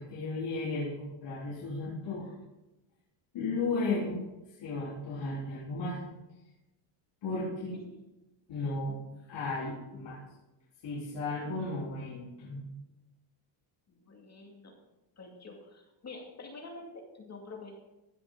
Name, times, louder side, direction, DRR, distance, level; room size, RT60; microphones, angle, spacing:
voice 1, 0.0-2.3 3.3-4.3 4.6-6.0 7.2-7.8 8.5-9.0 9.3-10.2 10.8-12.6, left 3 dB, 60° left, -8 dB, 3.9 m, -34 dB
voice 2, 13.9-14.8 15.2-17.8, left 3 dB, 35° left, 0 dB, 2.5 m, -47 dB
16.0 x 9.7 x 3.9 m, 1.0 s
cardioid pair, 135°, 48 cm